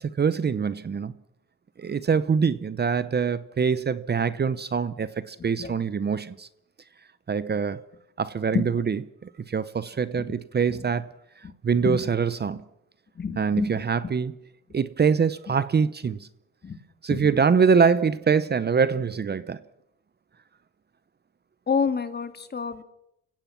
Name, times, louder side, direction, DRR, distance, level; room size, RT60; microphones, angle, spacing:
voice 1, 0.0-1.1 1.8-6.5 7.3-7.8 8.2-11.1 11.6-12.6 13.4-14.3 14.7-16.3 17.0-19.6, right 6 dB, 35° right, 0.9 m, -24 dB
voice 2, 13.2-13.7 16.6-16.8 17.1-17.2 21.7-22.8, left 5 dB, 35° left, 2.1 m, -27 dB
29.5 x 16.5 x 5.9 m
cardioid pair, 90°, 30 cm